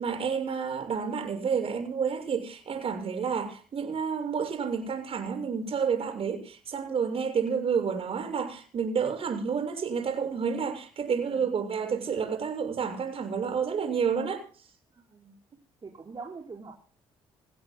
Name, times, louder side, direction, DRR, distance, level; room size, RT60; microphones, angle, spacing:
voice 1, 0.0-14.5, right 6 dB, 55° right, 6.7 m, -30 dB
voice 2, 14.9-15.3 15.8-16.7, right 4 dB, 40° right, 5.2 m, -44 dB
26.5 x 17.5 x 2.2 m
supercardioid pair, 70°, 12 cm